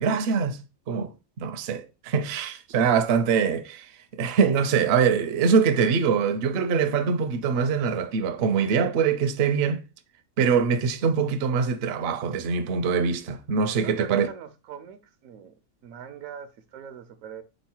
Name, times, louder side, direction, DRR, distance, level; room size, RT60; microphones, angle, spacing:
voice 1, 0.0-0.6 0.9-1.1 1.4-3.9 4.2-9.8 10.4-14.3, right 6 dB, 60° right, 0.7 m, -23 dB
voice 2, 13.8-15.6 15.8-17.4, right 8 dB, 80° right, 1.0 m, -41 dB
3.8 x 3.1 x 4.3 m
omnidirectional pair, 1.4 m